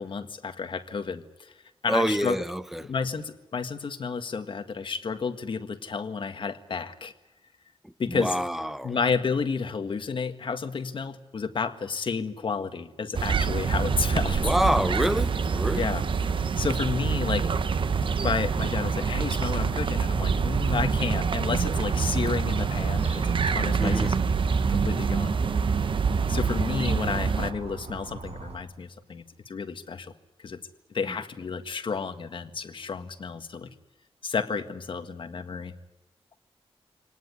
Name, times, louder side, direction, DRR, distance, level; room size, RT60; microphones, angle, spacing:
voice 1, 0.0-1.5 1.8-2.4 2.8-7.1 8.0-8.3 8.8-14.4 15.8-16.0 16.6-17.5 18.2-24.2 24.7-25.4 26.3-30.1 30.4-30.6 30.9-33.7 34.2-35.7, left 5 dB, 55° left, 1.7 m, -31 dB
voice 2, 1.9-2.9 7.8-8.9 14.2-15.9 23.8-24.1 31.0-31.2, equal, 5° right, 0.9 m, -27 dB
sound 1, 13.1-27.5, right 5 dB, 55° right, 0.9 m, -26 dB
sound 2, 18.3-28.6, right 4 dB, 80° right, 4.7 m, -40 dB
25.5 x 18.5 x 9.7 m
wide cardioid pair, 165°, 10 cm